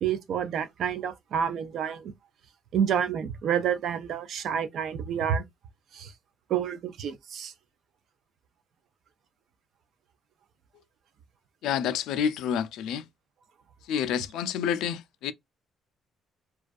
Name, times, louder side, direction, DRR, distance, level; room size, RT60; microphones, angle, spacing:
voice 1, 0.0-2.1 2.7-5.4 5.9-6.1 6.5-7.5, right 8 dB, 55° right, 0.4 m, -29 dB
voice 2, 11.6-13.0 13.9-15.3, left 8 dB, 85° left, 0.3 m, -28 dB
2.3 x 2.3 x 2.4 m
cardioid pair, 175°, 0 cm